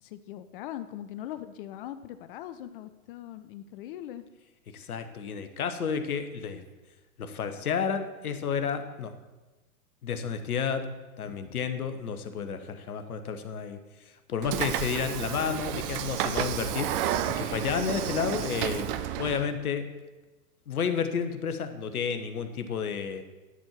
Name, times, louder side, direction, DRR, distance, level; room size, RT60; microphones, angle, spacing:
voice 1, 0.0-4.2, left 12 dB, 40° left, 12 dB, 0.5 m, -41 dB
voice 2, 4.7-6.6 7.2-9.1 10.0-10.9 11.2-13.8 14.3-18.9 19.2-19.9 20.7-23.2, left 6 dB, 75° left, 8 dB, 1.1 m, -31 dB
Train / Sliding door, 14.4-19.5, right 11 dB, 40° right, 0.6 m, -31 dB
11.0 x 4.4 x 7.2 m, 1.2 s
figure-of-eight pair, 105°, 44 cm